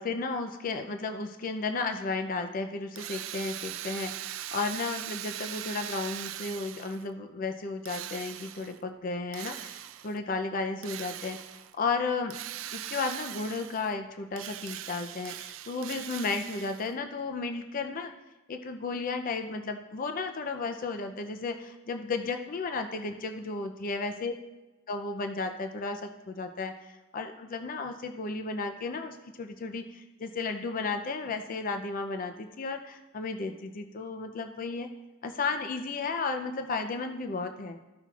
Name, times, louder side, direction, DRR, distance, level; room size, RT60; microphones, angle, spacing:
voice 1, 0.0-11.4 11.7-12.4 12.7-18.1 18.5-24.3 24.9-34.9 35.2-37.8, left 4 dB, 45° left, 7 dB, 0.5 m, -34 dB
Drill, 3.0-7.1 7.8-8.8 9.3-10.2 10.8-11.7 12.3-13.9 14.3-16.9, right 12 dB, 85° right, 0.4 m, -40 dB
14.0 x 5.7 x 2.4 m, 1.1 s
head